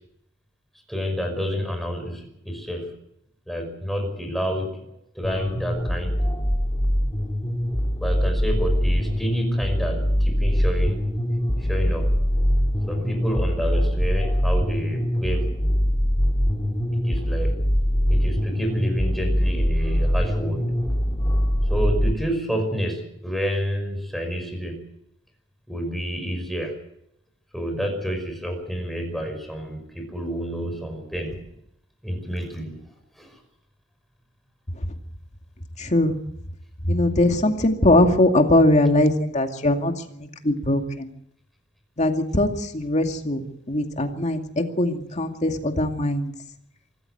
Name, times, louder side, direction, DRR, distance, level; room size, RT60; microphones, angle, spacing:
voice 1, 0.9-2.9 3.5-4.9 5.1-6.2 8.0-11.0 11.6-12.1 12.9-15.5 16.9-17.6 18.1-20.7 21.7-24.8 25.7-26.8 27.5-31.4 32.0-32.7 33.2-33.4, equal, ahead, 4 dB, 5.4 m, -29 dB
sound 1, 5.2-22.1, equal, 20° left, 2.4 m, -23 dB
voice 2, 35.8-36.1 36.9-39.9 40.4-41.1 42.0-42.5 42.7-46.3, left 1 dB, 35° left, 5 dB, 2.3 m, -21 dB
24.5 x 14.5 x 7.9 m, 0.76 s
head